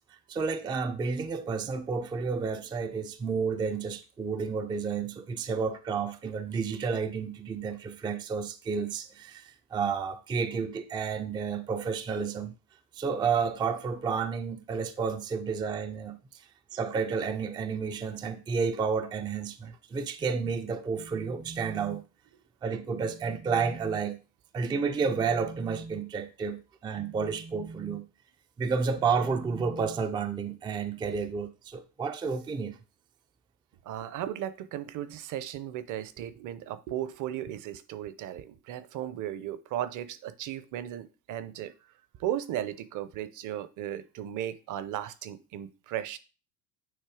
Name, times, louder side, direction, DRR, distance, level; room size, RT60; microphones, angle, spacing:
voice 1, 0.3-12.6 12.9-22.0 22.6-24.2 24.5-28.1 28.6-32.8, right 5 dB, 10° right, 0.3 m, -31 dB
voice 2, 33.9-41.7 42.2-46.2, right 11 dB, 45° right, 0.7 m, -36 dB
9.0 x 3.2 x 4.9 m
cardioid pair, 135°, 44 cm